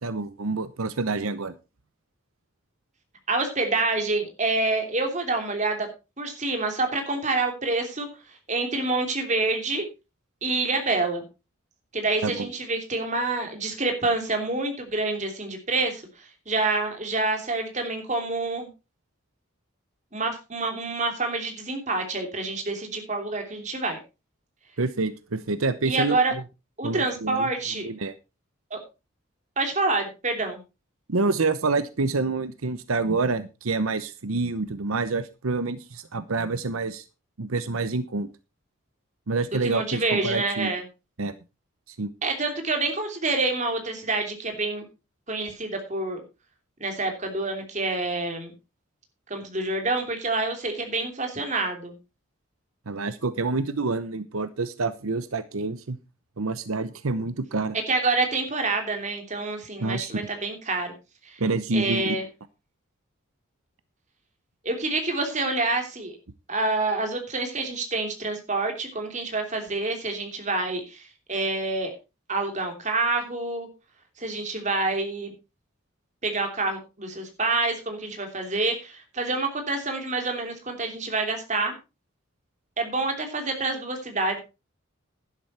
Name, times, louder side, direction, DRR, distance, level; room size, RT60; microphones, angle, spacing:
voice 1, 0.0-1.5 12.2-12.5 24.8-26.4 26.8-27.5 27.8-28.1 31.1-37.0 37.4-38.3 39.3-40.7 41.2-41.3 41.9-42.1 52.9-56.0 56.4-57.8 59.8-60.3 61.4-62.2, right 3 dB, 90° right, 13 dB, 0.9 m, -27 dB
voice 2, 3.3-5.9 6.2-8.1 8.5-9.8 10.4-11.3 11.9-16.0 16.5-18.7 20.1-24.0 25.8-26.3 26.8-27.9 28.7-28.8 29.6-30.6 39.5-40.8 42.2-44.8 45.3-46.2 46.8-48.5 49.3-52.0 57.9-60.9 61.2-61.4 61.7-62.2 64.6-66.2 66.5-71.0 71.3-71.9 72.3-73.7 74.2-75.3 76.2-81.7 82.8-84.4, right 3 dB, 35° right, 4 dB, 3.0 m, -27 dB
11.5 x 11.0 x 4.3 m, 0.29 s
head